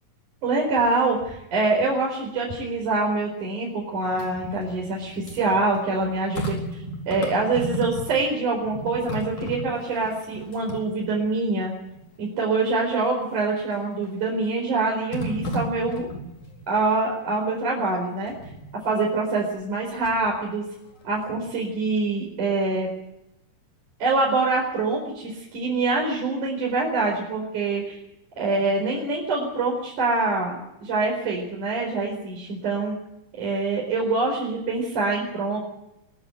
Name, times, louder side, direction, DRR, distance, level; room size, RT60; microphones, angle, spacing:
voice 1, 0.4-11.7 12.2-16.1 16.7-18.3 18.8-20.6 21.0-22.9 24.0-28.0 28.4-32.9 33.3-35.6, right 3 dB, 65° right, -2 dB, 6.0 m, -25 dB
sound 1, 4.0-8.4 8.6-11.4 12.0-12.1 13.7-14.2 15.1-16.6 18.3-18.7 19.6-20.3 20.7-21.7 22.0-22.1, equal, 60° left, 5.5 m, -35 dB
23.0 x 15.0 x 9.4 m, 0.86 s
omnidirectional pair, 3.8 m